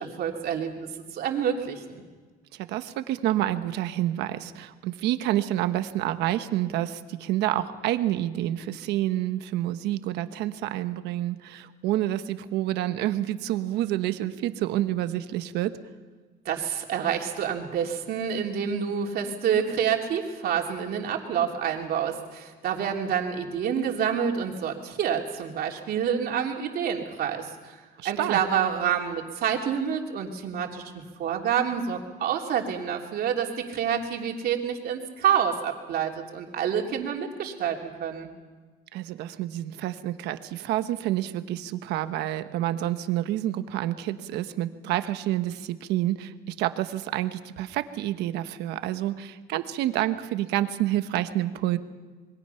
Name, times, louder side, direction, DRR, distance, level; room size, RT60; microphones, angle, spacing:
voice 1, 0.0-2.0 16.4-38.3, right 8 dB, 65° right, 2 dB, 3.2 m, -28 dB
voice 2, 2.5-15.8 28.0-28.4 38.9-51.8, right 13 dB, 90° right, 10 dB, 1.2 m, -28 dB
27.0 x 22.0 x 5.8 m, 1.4 s
cardioid pair, 110°, 17 cm